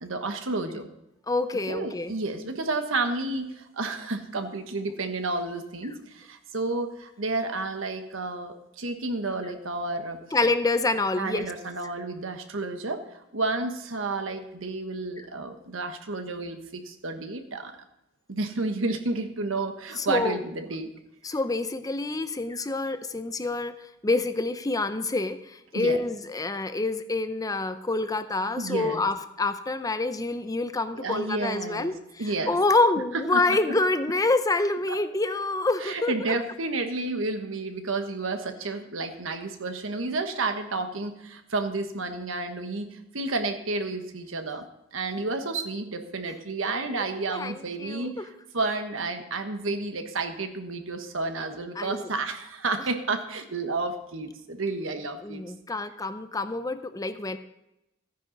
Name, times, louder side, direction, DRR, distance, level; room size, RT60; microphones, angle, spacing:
voice 1, 0.0-0.9 1.7-10.2 11.2-17.7 18.3-20.9 25.7-26.0 28.6-29.0 30.9-32.6 33.1-33.8 34.9-35.0 35.8-44.7 44.9-55.4, right 3 dB, 85° right, 7 dB, 1.3 m, -31 dB
voice 2, 1.3-2.1 10.3-11.5 20.0-20.4 21.2-23.7 24.0-25.4 25.7-31.9 32.5-36.1 46.7-46.8 47.3-48.1 51.8-52.1 55.2-57.4, left 2 dB, 20° left, 11 dB, 0.6 m, -27 dB
14.0 x 10.0 x 4.0 m, 0.89 s
head